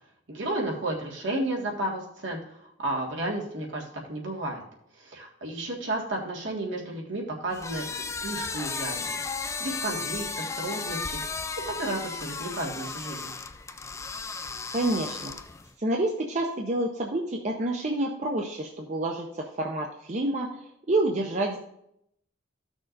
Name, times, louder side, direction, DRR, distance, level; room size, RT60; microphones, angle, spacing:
voice 1, 0.3-2.4 2.8-4.6 5.0-9.2 9.6-11.2 11.5-13.3, right 1 dB, 70° right, -2 dB, 1.8 m, -32 dB
sound 1, 7.5-15.7, left 4 dB, 15° left, 0.3 m, -34 dB
voice 2, 14.7-15.3 15.8-21.6, right 2 dB, 40° right, 1 dB, 0.7 m, -28 dB
14.5 x 6.2 x 2.6 m, 0.76 s
head